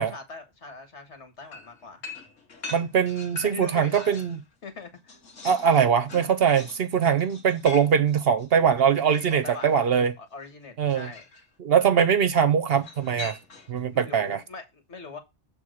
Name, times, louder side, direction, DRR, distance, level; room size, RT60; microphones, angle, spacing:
voice 1, 0.0-2.0 3.4-4.2 4.6-5.2 9.4-9.8 10.2-11.3 13.9-15.2, left 4 dB, 65° left, 1.8 m, -42 dB
sound 1, 1.5-4.4 4.8-9.8 10.9-11.5 12.8-13.8, left 4 dB, 80° left, 1.8 m, -43 dB
voice 2, 2.7-4.4 5.4-10.1 10.8-11.1 11.6-13.4 13.7-14.4, right 7 dB, 60° right, 0.8 m, -22 dB
7.2 x 3.6 x 6.3 m
omnidirectional pair, 1.3 m